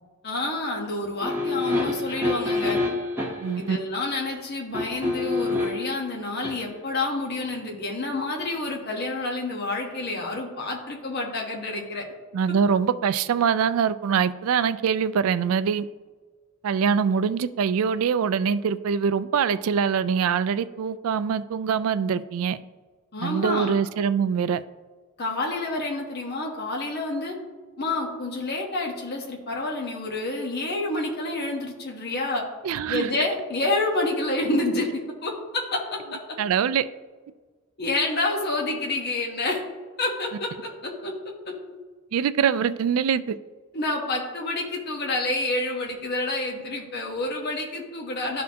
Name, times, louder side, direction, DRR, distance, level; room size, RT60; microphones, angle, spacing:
voice 1, 0.2-2.8 3.6-12.0 23.1-23.8 25.2-27.4 27.8-32.4 32.9-36.2 37.8-39.6 40.0-40.5 40.8-41.1 41.4-41.5 43.7-48.4, left 2 dB, 50° left, 1.2 m, -28 dB
sound 1, 1.2-3.5 4.7-5.9 6.4-6.5, left 2 dB, 10° right, 1.0 m, -27 dB
voice 2, 3.4-3.8 12.3-15.9 16.6-22.6 23.2-24.6 32.6-33.1 36.4-36.9 42.1-43.4, right 7 dB, 75° right, 0.3 m, -23 dB
12.0 x 4.2 x 2.8 m
head